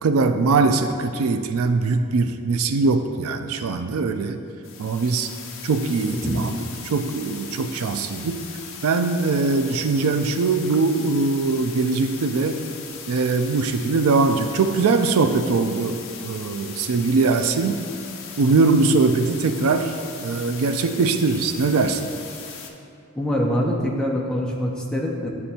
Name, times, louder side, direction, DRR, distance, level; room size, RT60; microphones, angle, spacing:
voice 1, 0.0-4.4 4.8-5.3 5.6-8.4 8.8-12.7 13.1-17.8 18.4-20.0 20.2-22.1, right 4 dB, 75° right, 8 dB, 0.4 m, -21 dB
sound 1, 4.6-22.7, left 6 dB, 60° left, 0.5 m, -39 dB
voice 2, 6.1-6.5 23.1-25.3, equal, 5° left, -2 dB, 0.5 m, -24 dB
9.8 x 3.4 x 2.8 m, 2.7 s
head